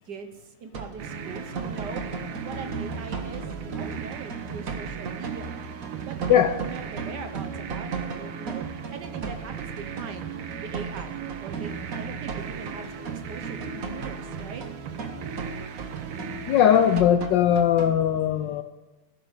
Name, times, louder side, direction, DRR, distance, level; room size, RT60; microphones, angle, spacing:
voice 1, 0.0-2.1 2.4-5.6 6.0-8.6 8.9-10.3 10.6-12.9 13.3-14.7, right 6 dB, 60° right, 7 dB, 1.3 m, -41 dB
sound 1, 0.7-1.0 1.4-18.0, right 5 dB, 45° right, 1.4 m, -36 dB
sound 2, 1.0-17.0, right 6 dB, 85° right, 1.8 m, -37 dB
voice 2, 16.5-18.6, left 9 dB, 75° left, 9 dB, 1.0 m, -20 dB
16.0 x 5.6 x 7.2 m, 1.1 s
omnidirectional pair, 2.4 m